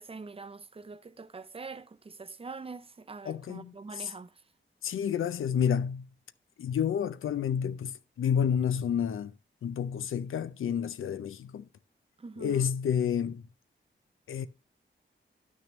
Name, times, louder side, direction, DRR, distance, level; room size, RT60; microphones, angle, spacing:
voice 1, 0.0-4.4 12.2-12.7, right 4 dB, 25° right, 0.5 m, -44 dB
voice 2, 3.3-4.1 4.8-6.1 6.6-9.3 9.6-11.7 12.4-13.4 14.3-14.5, left 8 dB, 85° left, 0.4 m, -30 dB
10.5 x 6.2 x 3.0 m
cardioid pair, 75°, 21 cm